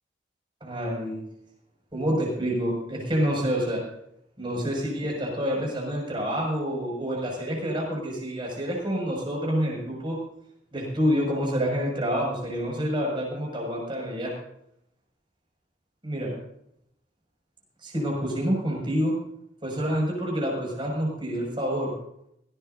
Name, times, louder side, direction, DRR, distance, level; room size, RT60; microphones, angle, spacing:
voice 1, 0.6-1.2 1.9-3.8 4.4-10.2 10.7-14.3 16.0-16.4 17.8-19.1 19.6-21.9, equal, 25° right, -2 dB, 6.4 m, -27 dB
18.0 x 17.5 x 2.7 m, 0.77 s
head